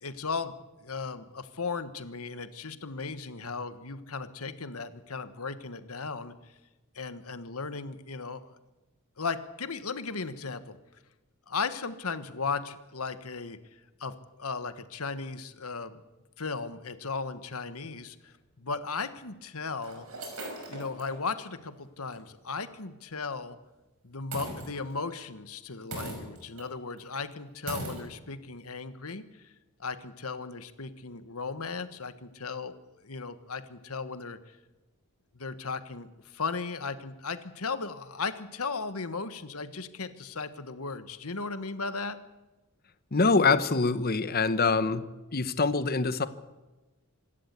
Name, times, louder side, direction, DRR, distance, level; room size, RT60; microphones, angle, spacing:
voice 1, 0.0-0.5 0.8-6.3 6.9-8.4 9.2-10.8 11.5-13.6 14.0-16.0 16.4-20.1 20.7-23.6 24.0-29.4 29.8-34.6 35.3-42.2, left 4 dB, 75° left, 11 dB, 1.4 m, -36 dB
sound 1, 18.3-18.4 19.2-19.3 19.8-21.2 21.6-21.7 22.1-22.3 24.3-25.1 25.9-26.7 27.0-27.1 27.7-28.1, right 2 dB, 75° right, 5.8 m, -39 dB
voice 2, 43.1-45.0 45.3-46.3, left 4 dB, 45° left, 13 dB, 1.0 m, -24 dB
26.0 x 13.0 x 8.3 m, 1.1 s
head